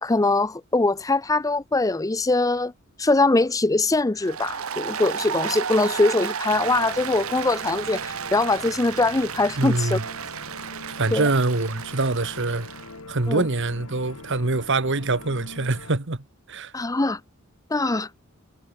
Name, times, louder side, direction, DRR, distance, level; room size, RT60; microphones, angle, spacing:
voice 1, 0.0-2.7 3.0-10.0 11.1-11.2 13.3-13.4 16.7-17.2 17.7-18.1, left 2 dB, 15° left, 0.6 m, -22 dB
Applause, 4.2-12.9, right 7 dB, 80° right, 1.0 m, -33 dB
sound 1, 6.5-15.9, left 2 dB, 85° left, 2.4 m, -43 dB
voice 2, 9.6-10.0 11.0-12.7 13.1-16.7, right 2 dB, 60° right, 1.6 m, -24 dB
head